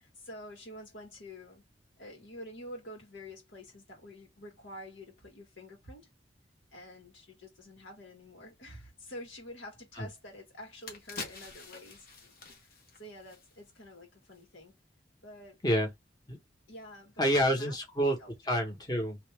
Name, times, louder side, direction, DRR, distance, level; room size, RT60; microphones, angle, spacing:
voice 1, 0.0-1.6 2.0-6.1 6.7-14.7 15.2-15.6 16.7-17.8 18.2-18.3, left 1 dB, 85° left, 1.8 m, -48 dB
sound 1, 10.2-10.3 10.6-13.9 14.2-14.4, left 4 dB, 55° left, 1.0 m, -46 dB
voice 2, 17.2-18.2 18.4-19.2, equal, 20° left, 1.1 m, -28 dB
3.0 x 2.6 x 3.4 m
head